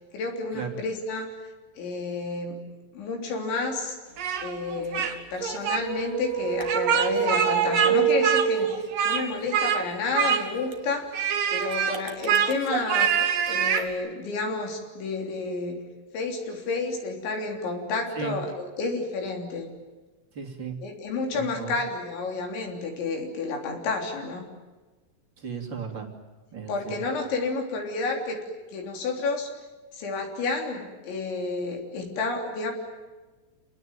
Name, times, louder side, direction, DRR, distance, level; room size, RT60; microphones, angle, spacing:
voice 1, 0.1-1.3 1.8-2.6 2.9-4.0 4.4-11.2 11.5-15.8 16.1-19.7 20.8-24.5 26.7-28.4 28.7-29.5 29.9-32.7, left 3 dB, 65° left, 2 dB, 5.6 m, -30 dB
Speech, 4.2-5.1 5.4-5.8 6.6-7.9 8.2-9.2 9.5-9.8 10.1-10.7 11.1-13.9, right 8 dB, 55° right, 2.9 m, -25 dB
sound 1, 5.7-9.3, right 8 dB, 75° right, 4.6 m, -27 dB
voice 2, 20.3-20.8 21.3-21.8 25.4-26.1 26.5-27.0, right 6 dB, 30° right, 3 dB, 3.0 m, -35 dB
29.0 x 20.0 x 9.3 m, 1.2 s
omnidirectional pair, 5.7 m